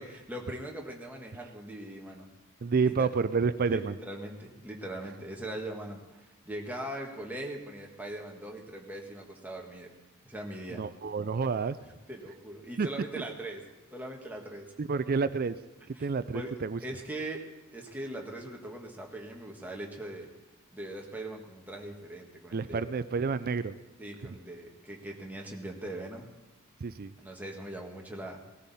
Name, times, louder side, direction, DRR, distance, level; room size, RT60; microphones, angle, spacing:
voice 1, 0.0-2.3 2.8-3.1 3.7-9.9 10.2-10.8 12.1-14.7 15.9-16.1 16.3-17.5 17.7-20.3 20.7-22.8 24.0-26.3 27.2-28.5, right 1 dB, 5° right, 0 dB, 1.6 m, -41 dB
voice 2, 2.6-3.9 10.8-11.8 12.8-12.9 14.8-15.6 16.0-16.8 22.5-23.8 26.8-27.1, right 5 dB, 40° right, 14 dB, 0.4 m, -29 dB
19.0 x 13.5 x 4.2 m, 1.0 s
head